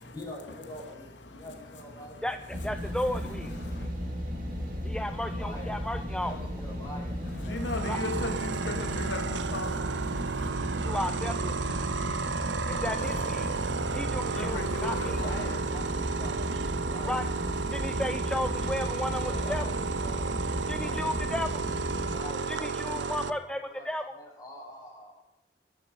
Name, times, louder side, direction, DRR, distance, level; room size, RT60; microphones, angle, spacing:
voice 1, 0.0-2.2 5.2-8.0 15.0-17.6 19.2-20.3 20.6-25.2, equal, 20° left, 6.5 m, -45 dB
voice 2, 1.2-1.6 2.0-3.9 7.3-10.5 13.0-14.0 14.3-15.7, left 2 dB, 85° left, 2.5 m, -39 dB
voice 3, 2.2-3.6 4.8-6.3 7.9-8.0 10.8-11.6 12.7-13.5 13.9-15.0 17.1-17.3 17.7-19.6 20.7-21.5 22.5-23.6 23.8-24.0, left 1 dB, 5° left, 0.6 m, -33 dB
sound 1, 2.5-22.2, equal, 50° right, 5.5 m, -35 dB
sound 2, 7.5-23.3, right 5 dB, 85° right, 0.8 m, -33 dB
23.0 x 11.0 x 5.5 m
head